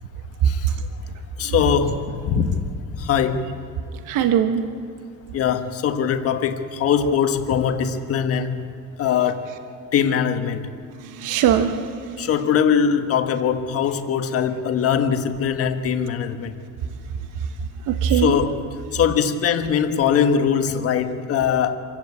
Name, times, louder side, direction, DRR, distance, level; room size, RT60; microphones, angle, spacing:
voice 1, 0.4-0.7 1.4-2.6 2.9-3.5 5.3-8.7 9.0-9.4 9.9-10.7 12.2-16.6 18.1-18.6 18.9-21.8, left 7 dB, 45° left, 7 dB, 1.5 m, -21 dB
voice 2, 4.1-4.6 11.0-12.3 17.9-18.4, right 9 dB, 70° right, 7 dB, 1.2 m, -21 dB
26.0 x 15.0 x 8.6 m, 2.3 s
cardioid pair, 160°, 32 cm